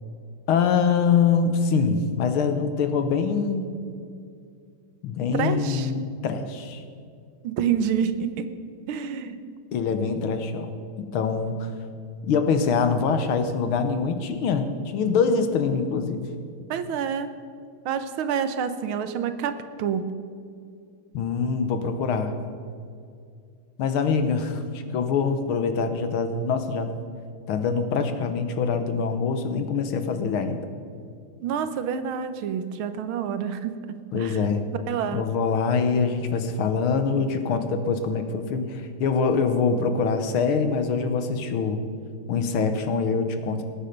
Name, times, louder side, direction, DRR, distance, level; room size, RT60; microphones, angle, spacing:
voice 1, 0.5-3.7 5.0-6.8 9.7-10.7 11.1-11.7 12.3-16.2 21.1-22.4 23.8-26.9 27.5-30.6 34.1-34.6 35.1-41.8 42.3-43.6, left 5 dB, 80° left, 8 dB, 1.8 m, -24 dB
voice 2, 5.3-5.9 7.4-8.5 8.9-9.4 16.7-17.3 17.9-20.1 31.4-33.7 34.1-34.4 34.9-35.2, right 7 dB, 75° right, 10 dB, 1.6 m, -27 dB
19.0 x 9.0 x 5.3 m, 2.3 s
omnidirectional pair, 2.3 m